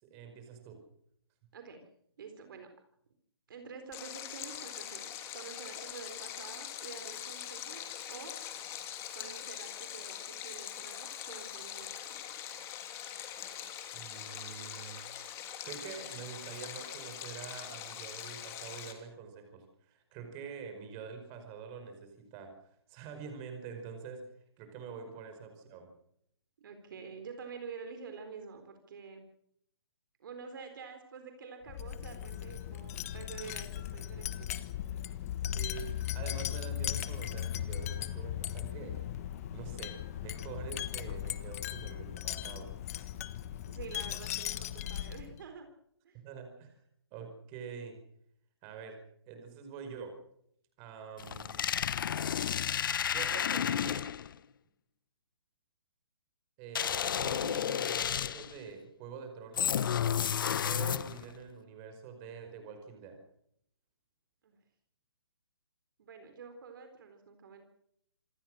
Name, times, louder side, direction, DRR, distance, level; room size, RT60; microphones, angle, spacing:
voice 1, 0.0-0.8 13.9-15.0 15.3-22.5 22.9-24.2 24.6-25.9 35.5-39.0 39.5-42.7 46.1-46.7 47.1-48.0 48.6-49.0 49.3-50.2 50.8-51.7 53.1-54.0 56.6-59.8 60.6-63.2, right 6 dB, 25° right, 6 dB, 5.2 m, -46 dB
voice 2, 1.5-1.8 2.2-2.7 3.5-7.8 8.1-8.3 9.1-12.2 26.6-29.3 30.2-34.7 43.6-45.7 46.0-46.2 64.4-64.6 66.0-67.6, right 5 dB, 50° right, 7 dB, 4.1 m, -48 dB
Stream, 3.9-18.9, left 10 dB, 20° left, 3.0 m, -43 dB
Wind chime, 31.7-45.4, left 11 dB, 35° left, 1.3 m, -38 dB
sound 1, 51.2-54.3 56.8-58.6 59.6-61.3, left 8 dB, 50° left, 1.1 m, -31 dB
27.0 x 19.0 x 6.5 m, 0.70 s
hypercardioid pair, 150°, 14 cm